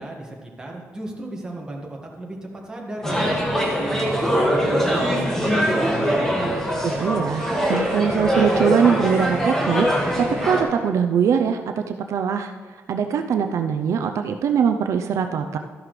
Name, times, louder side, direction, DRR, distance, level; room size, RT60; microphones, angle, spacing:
voice 1, 0.0-6.7, right 1 dB, 15° right, -2 dB, 1.7 m, -35 dB
sound 1, 3.0-10.6, equal, 10° left, 1.9 m, -22 dB
voice 2, 6.8-9.9 10.2-12.5 12.9-15.6, right 7 dB, 75° right, 6 dB, 0.5 m, -22 dB
13.0 x 11.0 x 3.3 m, 1.5 s
wide cardioid pair, 150°, 5 cm